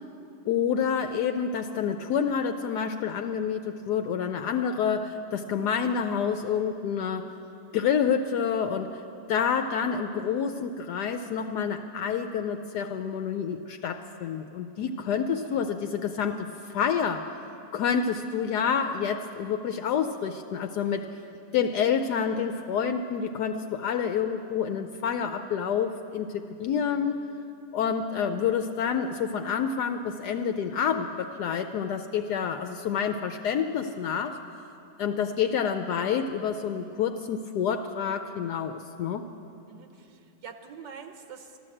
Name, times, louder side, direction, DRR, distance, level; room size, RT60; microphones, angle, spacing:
voice 1, 0.5-7.3 7.7-9.0 9.3-17.3 17.7-21.1 21.5-27.2 27.7-34.4 35.0-39.2, left 7 dB, 75° left, 7 dB, 1.1 m, -28 dB
voice 2, 14.8-15.1 15.4-15.6 39.7-41.6, right 6 dB, 85° right, 6 dB, 1.4 m, -46 dB
13.5 x 12.0 x 7.7 m, 2.7 s
omnidirectional pair, 1.9 m